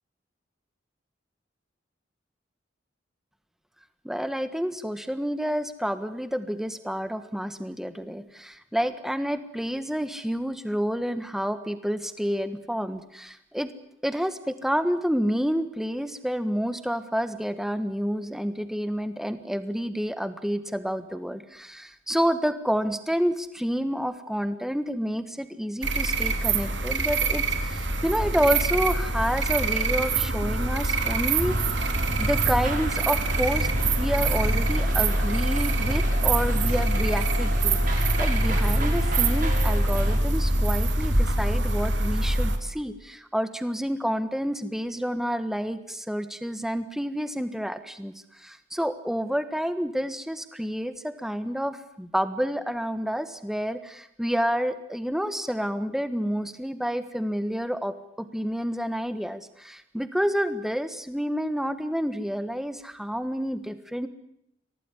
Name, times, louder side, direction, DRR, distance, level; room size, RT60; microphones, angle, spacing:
voice 1, 4.0-13.7 14.0-31.7 32.2-33.7 34.0-48.1 48.4-64.1, equal, ahead, 11 dB, 1.5 m, -29 dB
sound 1, 25.8-42.6, right 2 dB, 70° right, 2.9 m, -24 dB
sound 2, 31.4-40.2, right 1 dB, 45° right, 6.4 m, -33 dB
24.0 x 18.5 x 9.8 m, 0.77 s
head